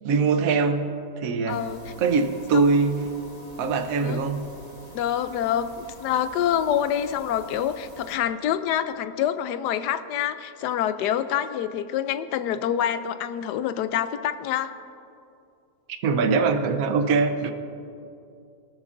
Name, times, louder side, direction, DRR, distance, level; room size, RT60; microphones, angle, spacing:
voice 1, 0.0-0.8 1.2-1.6 2.0-3.1 3.6-4.4 16.0-17.5, right 4 dB, 65° right, 7 dB, 1.2 m, -22 dB
voice 2, 1.5-1.8 2.5-2.7 4.0-4.2 4.9-14.7, left 10 dB, 90° left, 12 dB, 1.2 m, -26 dB
sound 1, 1.5-8.2, equal, 25° left, 1.6 m, -45 dB
19.5 x 13.0 x 2.6 m, 2.5 s
omnidirectional pair, 1.7 m